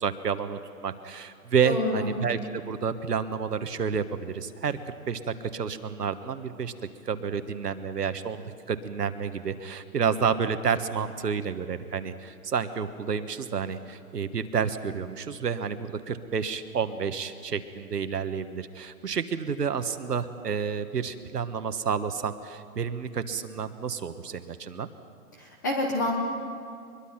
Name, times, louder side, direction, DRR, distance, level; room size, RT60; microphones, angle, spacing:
voice 1, 0.0-2.4 2.7-6.7 7.0-24.9, right 6 dB, 85° right, 10 dB, 1.5 m, -30 dB
voice 2, 1.6-2.1 25.3-26.1, left 2 dB, 15° left, 2 dB, 0.7 m, -28 dB
23.0 x 22.0 x 5.9 m, 2.4 s
hypercardioid pair, 160°, 46 cm